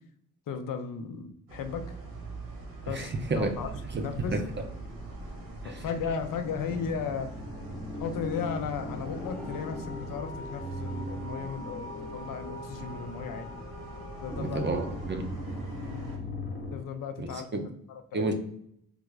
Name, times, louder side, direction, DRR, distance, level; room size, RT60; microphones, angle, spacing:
voice 1, 0.5-2.0 2.9-3.7 4.0-4.3 5.6-7.3 8.0-13.5 14.2-14.6 15.9-16.0 16.7-18.3, left 6 dB, 65° left, 7 dB, 0.6 m, -35 dB
sound 1, 1.5-16.2, right 2 dB, 85° right, 1.2 m, -43 dB
voice 2, 2.9-3.5 3.9-4.0 4.3-4.4 5.6-5.8 14.4-15.3 17.2-17.6 18.1-18.3, right 3 dB, 35° right, 6 dB, 0.5 m, -31 dB
sound 2, 3.4-5.4 6.1-6.2 6.4-12.8 14.3-16.8, left 1 dB, 35° left, 1.0 m, -40 dB
sound 3, 9.2-16.1, left 2 dB, 5° left, 0.8 m, -44 dB
3.4 x 2.5 x 3.1 m, 0.71 s
cardioid pair, 120°, 35 cm